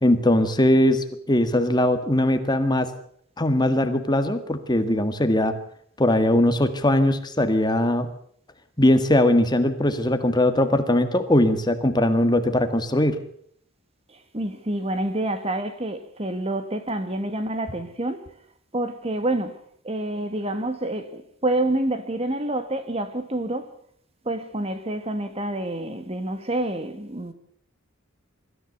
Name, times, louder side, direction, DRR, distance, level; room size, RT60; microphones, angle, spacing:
voice 1, 0.0-2.9 3.4-5.5 6.0-8.1 8.8-13.2, left 1 dB, 20° left, 1.7 m, -20 dB
voice 2, 14.1-18.3 18.7-19.6 19.8-23.7 24.2-27.3, right 1 dB, 30° right, 1.6 m, -28 dB
24.0 x 14.5 x 8.2 m
head